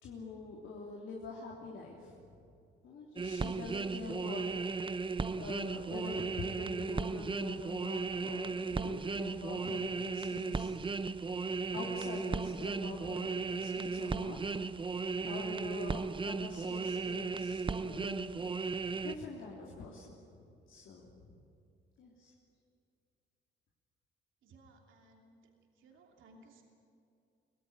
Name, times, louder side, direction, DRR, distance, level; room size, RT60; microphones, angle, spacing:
voice 1, 0.0-2.4 2.8-4.4 5.3-10.7 11.5-14.4 15.2-18.4 19.0-21.4 22.0-22.3, left 4 dB, 75° left, -4 dB, 3.3 m, -45 dB
sound 1, 3.2-19.1, right 4 dB, 25° right, 0.8 m, -36 dB
voice 2, 24.4-25.4 25.8-26.6, right 2 dB, 80° right, 1 dB, 3.0 m, -60 dB
24.5 x 17.0 x 9.2 m, 2.6 s
cardioid pair, 90°, 20 cm